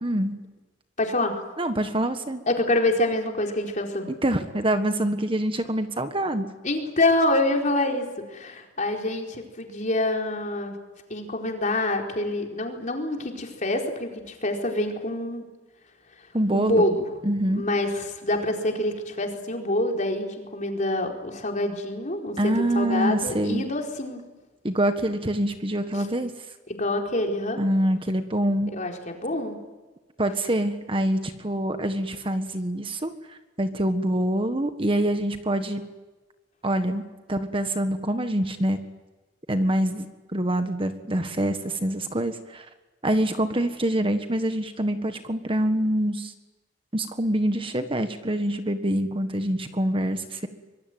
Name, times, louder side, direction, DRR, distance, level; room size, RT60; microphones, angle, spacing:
voice 1, 0.0-0.3 1.6-2.4 4.2-6.5 16.3-16.9 17.2-17.6 22.4-23.6 24.6-26.3 27.6-28.7 30.2-35.8 36.6-37.0 37.3-38.8 39.5-40.1 40.3-42.6 43.0-46.3 46.9-50.5, right 1 dB, 30° right, 8 dB, 1.6 m, -25 dB
voice 2, 1.0-1.3 2.5-4.1 6.6-10.7 11.1-15.4 16.5-17.1 17.5-24.2 25.9-26.1 26.7-27.6 28.7-29.6, left 1 dB, 40° left, 2 dB, 4.5 m, -26 dB
25.0 x 23.0 x 9.3 m, 1.2 s
head